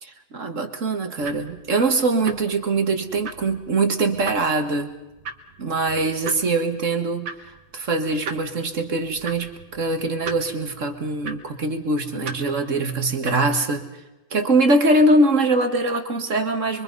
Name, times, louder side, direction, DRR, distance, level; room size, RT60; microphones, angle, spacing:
voice 1, 0.0-4.9 5.6-13.9 14.3-16.8, right 2 dB, 40° right, 6 dB, 2.1 m, -22 dB
sound 1, 1.2-13.8, right 4 dB, 85° right, 2.5 m, -40 dB
26.5 x 24.0 x 5.4 m, 1.0 s
omnidirectional pair, 2.0 m